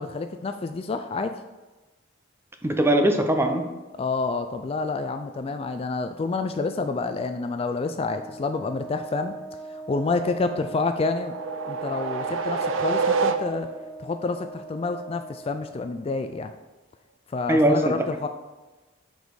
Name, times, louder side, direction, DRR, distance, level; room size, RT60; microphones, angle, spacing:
voice 1, 0.0-1.3 4.0-9.3 9.7-11.3 11.7-13.7 14.0-16.5 17.3-18.3, left 3 dB, 30° left, 8 dB, 0.3 m, -28 dB
voice 2, 2.6-3.7 17.5-17.9, right 1 dB, 15° right, 5 dB, 0.7 m, -20 dB
Wind instrument woodwind instrument, 7.9-15.7, right 3 dB, 10° left, 2.0 m, -40 dB
sound 1, 10.6-13.9, right 4 dB, 85° right, 0.5 m, -27 dB
6.2 x 5.2 x 4.7 m, 1.2 s
head